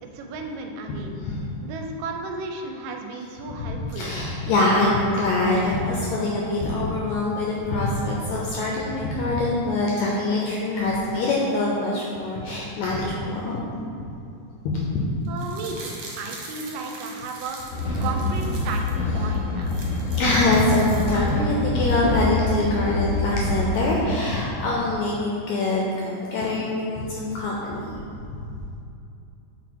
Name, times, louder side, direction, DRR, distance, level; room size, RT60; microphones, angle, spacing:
voice 1, 0.0-1.2 1.6-4.1 15.3-17.6 18.0-19.9, right 3 dB, 80° right, 3 dB, 2.1 m, -34 dB
voice 2, 3.6-13.6 14.6-15.2 20.2-27.8, left 2 dB, 80° left, -4 dB, 1.7 m, -24 dB
sound 1, 15.2-18.9 19.3-19.4 19.6-21.5 21.9-22.0, right 3 dB, 65° right, 1.9 m, -42 dB
sound 2, 17.7-24.1, left 2 dB, 60° left, 1.1 m, -26 dB
5.8 x 4.1 x 4.6 m, 2.7 s
omnidirectional pair, 3.9 m